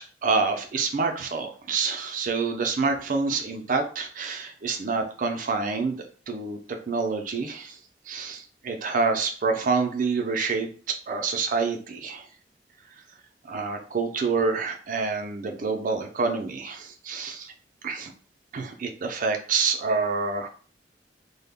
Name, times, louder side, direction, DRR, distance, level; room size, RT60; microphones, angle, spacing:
voice 1, 0.2-6.6 6.9-7.8 8.1-12.3 13.5-17.5 17.8-18.1 18.5-20.5, right 4 dB, 50° right, 5 dB, 0.4 m, -27 dB
2.1 x 2.1 x 3.4 m, 0.41 s
head